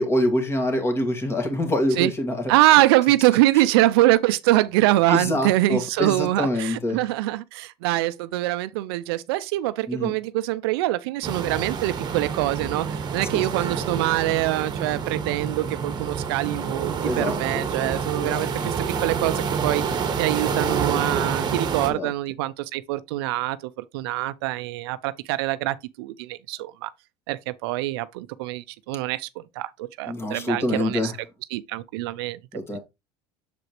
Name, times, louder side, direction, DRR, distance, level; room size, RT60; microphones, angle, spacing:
voice 1, 0.0-2.4 5.1-7.0 9.9-10.1 13.3-13.5 17.0-17.7 18.2-18.7 21.9-22.1 30.1-31.2 32.5-32.8, left 1 dB, 20° left, 2.2 m, -25 dB
voice 2, 2.5-18.7 19.0-23.6 23.9-26.9 27.3-31.1 31.5-32.4 32.7-32.8, right 17 dB, 80° right, 0.5 m, -24 dB
sound 1, 11.2-21.9, right 6 dB, 35° right, 1.2 m, -28 dB
6.8 x 4.9 x 3.1 m
supercardioid pair, 105°, 13 cm